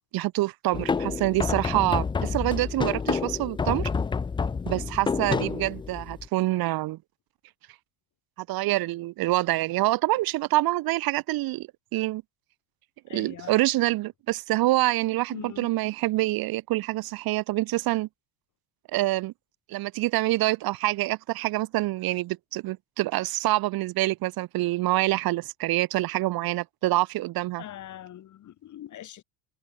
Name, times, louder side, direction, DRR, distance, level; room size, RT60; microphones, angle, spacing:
voice 1, 0.1-3.9 4.7-7.0 8.4-12.2 13.1-18.1 18.9-19.3 19.7-27.6, right 18 dB, 50° right, 2.2 m, -26 dB
sound 1, 0.7-6.3, left 5 dB, 10° left, 0.5 m, -29 dB
voice 2, 13.1-13.6 15.3-15.7 27.6-29.2, left 12 dB, 40° left, 7.1 m, -42 dB
cardioid pair, 165°, 46 cm